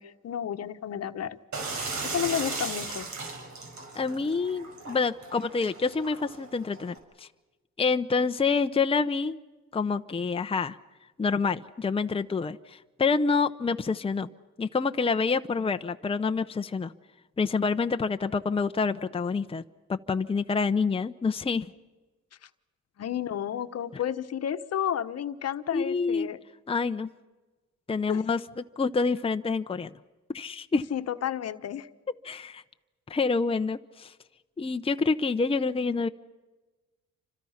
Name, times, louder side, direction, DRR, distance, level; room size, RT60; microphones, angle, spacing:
voice 1, 0.0-1.4 2.0-3.1 23.0-26.4 28.1-28.2 30.7-31.9, left 9 dB, 55° left, 10 dB, 1.2 m, -31 dB
sound 1, 1.5-7.0, right 3 dB, 70° right, 5.7 m, -37 dB
voice 2, 3.9-7.3 7.8-9.4 9.7-10.8 11.2-14.3 14.6-16.9 17.4-19.6 19.9-21.7 25.7-26.3 26.7-27.1 27.9-29.9 30.3-30.8 32.2-32.6 33.1-34.1 34.6-36.1, left 4 dB, 20° left, 8 dB, 0.8 m, -27 dB
29.0 x 26.0 x 5.8 m, 1.2 s
cardioid pair, 90°, 30 cm